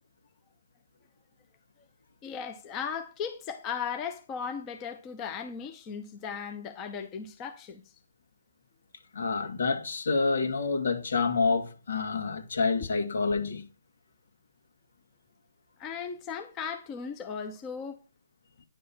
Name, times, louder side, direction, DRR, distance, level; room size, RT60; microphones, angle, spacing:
voice 1, 2.2-7.8 15.8-18.0, left 6 dB, 20° left, 0.9 m, -37 dB
voice 2, 9.1-13.7, left 4 dB, 75° left, 2.3 m, -28 dB
10.5 x 5.5 x 5.8 m
hypercardioid pair, 165°, 0 cm